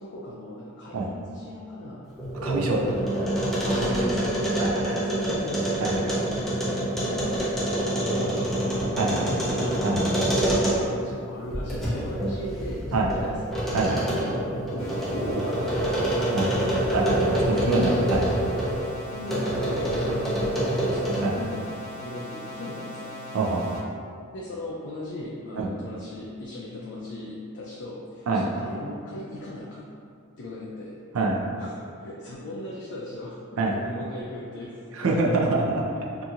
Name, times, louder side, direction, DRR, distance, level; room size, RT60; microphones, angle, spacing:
voice 1, 0.0-2.1 2.6-2.9 3.6-4.6 4.9-7.4 7.7-12.9 13.1-13.5 14.2-17.2 19.1-23.2 24.3-28.3 28.5-30.0 30.4-31.0 31.6-33.4 33.7-34.9 35.6-35.7, left 1 dB, 55° left, -5 dB, 0.4 m, -37 dB
sound 1, 2.1-11.0 11.5-18.8 19.3-21.4, right 1 dB, ahead, 0.5 m, -26 dB
voice 2, 2.4-2.9 3.8-4.0 4.6-5.0 5.8-6.0 9.0-9.2 9.8-10.0 12.9-13.1 13.7-14.2 16.3-16.5 16.9-17.2 17.5-18.3 21.2-21.3 23.3-23.8 25.6-25.7 28.3-28.5 31.1-31.4 33.6-33.7 35.0-35.8, right 3 dB, 75° right, -1 dB, 0.4 m, -25 dB
sound 2, 14.8-23.8, left 1 dB, 35° left, 1.0 m, -39 dB
2.8 x 2.6 x 2.4 m, 2.3 s
head